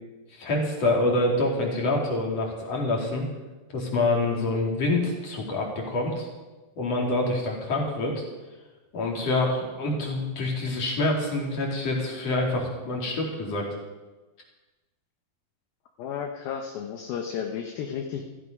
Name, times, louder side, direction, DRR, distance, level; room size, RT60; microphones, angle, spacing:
voice 1, 0.3-3.3 3.7-6.3 6.8-8.2 8.9-13.6, left 2 dB, 40° left, -1 dB, 3.3 m, -26 dB
voice 2, 16.0-18.2, left 7 dB, 75° left, 3 dB, 2.3 m, -33 dB
14.5 x 14.5 x 5.3 m, 1.2 s
omnidirectional pair, 5.4 m